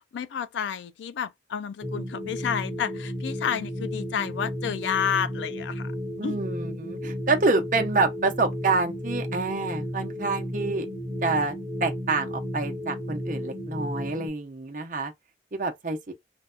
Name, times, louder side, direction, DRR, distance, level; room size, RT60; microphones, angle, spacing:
voice 1, 0.1-5.9 6.2-6.4, left 8 dB, 80° left, 0.3 m, -30 dB
sound 1, 1.8-14.3, equal, 10° left, 1.0 m, -33 dB
voice 2, 6.2-10.9 11.2-11.5 11.8-15.1 15.5-16.1, right 3 dB, 45° right, 0.7 m, -27 dB
2.6 x 2.2 x 2.4 m
head